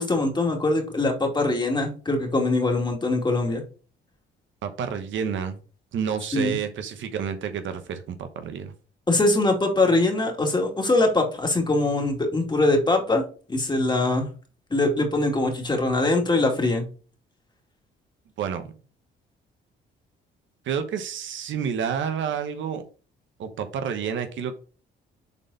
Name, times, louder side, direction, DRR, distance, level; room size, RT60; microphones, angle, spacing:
voice 1, 0.0-3.6 6.3-6.6 9.1-13.2 13.5-14.3 14.7-16.9, left 2 dB, 20° left, 2.2 m, -22 dB
voice 2, 4.6-5.6 5.9-8.7 18.4-18.7 20.6-22.8 23.4-24.5, right 7 dB, 75° right, 1.1 m, -29 dB
7.3 x 4.1 x 4.0 m
cardioid pair, 90°, 20 cm